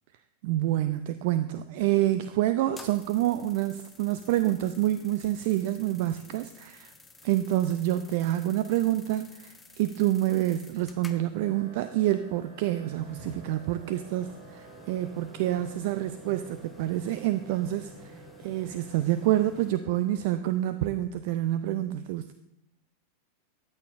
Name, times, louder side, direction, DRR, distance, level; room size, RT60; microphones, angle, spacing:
voice 1, 0.4-6.9 7.2-17.9 18.4-22.3, right 14 dB, 50° right, 12 dB, 0.3 m, -27 dB
sound 1, 2.6-19.7, left 3 dB, 10° left, 0.8 m, -52 dB
sound 2, 11.3-20.9, right 6 dB, 70° right, 2.8 m, -51 dB
13.0 x 8.4 x 2.5 m, 0.86 s
figure-of-eight pair, 90°, 0 cm